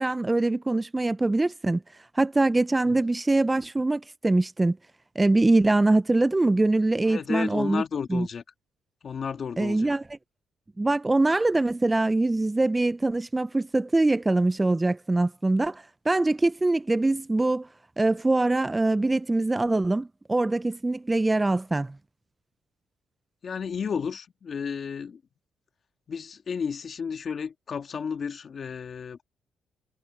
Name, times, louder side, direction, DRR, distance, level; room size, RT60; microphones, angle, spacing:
voice 1, 0.0-1.8 2.1-4.8 5.2-7.8 8.1-8.3 9.6-10.0 10.8-17.7 18.0-22.0, right 2 dB, 15° right, 0.3 m, -23 dB
voice 2, 7.0-8.4 9.0-9.9 23.4-25.2 26.1-29.2, left 6 dB, 50° left, 1.7 m, -32 dB
cardioid pair, 90°, 0 cm